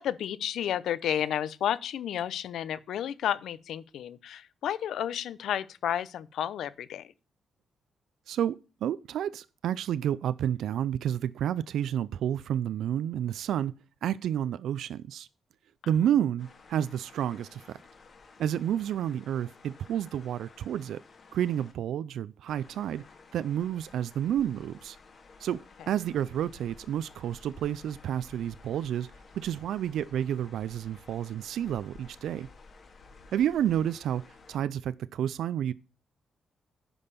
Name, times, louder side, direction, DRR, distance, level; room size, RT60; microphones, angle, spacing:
voice 1, 0.0-7.1, left 10 dB, 85° left, 0.6 m, -31 dB
voice 2, 8.3-13.7 14.0-15.3 15.9-17.8 18.4-21.0 21.3-23.0 23.3-25.0 25.4-25.6 25.9-29.1 29.3-32.5 33.3-34.2 34.5-35.7, right 10 dB, 85° right, 0.4 m, -30 dB
sound 1, 16.4-21.7 22.5-34.6, left 4 dB, 45° left, 2.6 m, -54 dB
9.9 x 5.4 x 6.7 m
cardioid pair, 115°, 0 cm